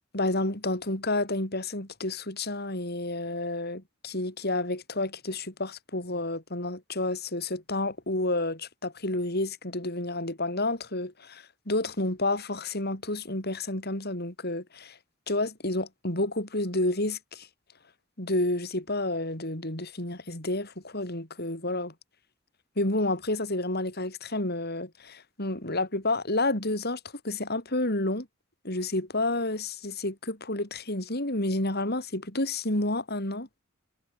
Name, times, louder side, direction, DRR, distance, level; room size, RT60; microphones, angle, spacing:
voice 1, 0.1-15.0 15.3-17.5 18.2-21.9 22.8-28.3 28.6-33.5, left 2 dB, 50° left, 6.6 m, -30 dB
head